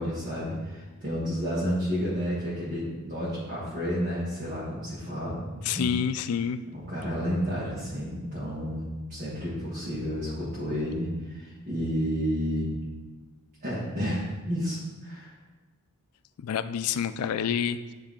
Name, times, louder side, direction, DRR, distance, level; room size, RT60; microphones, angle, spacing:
voice 1, 0.0-5.9 6.7-12.7 13.6-15.3, equal, 40° right, -9 dB, 1.6 m, -31 dB
voice 2, 5.6-6.6 16.4-17.8, left 8 dB, 85° left, 13 dB, 0.3 m, -28 dB
9.9 x 3.3 x 3.7 m, 1.2 s
head